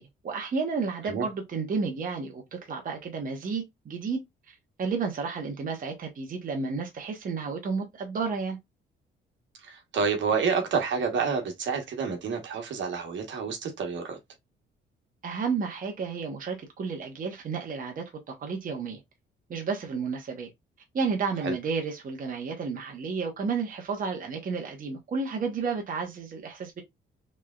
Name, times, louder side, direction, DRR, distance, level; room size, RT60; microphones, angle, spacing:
voice 1, 0.0-4.2 4.5-8.6 15.2-19.0 19.5-20.5 20.9-26.8, right 5 dB, 45° right, 0.9 m, -32 dB
voice 2, 9.6-14.2 21.4-21.6, right 5 dB, 70° right, 1.2 m, -29 dB
3.4 x 3.1 x 2.3 m
cardioid pair, 90°, 20 cm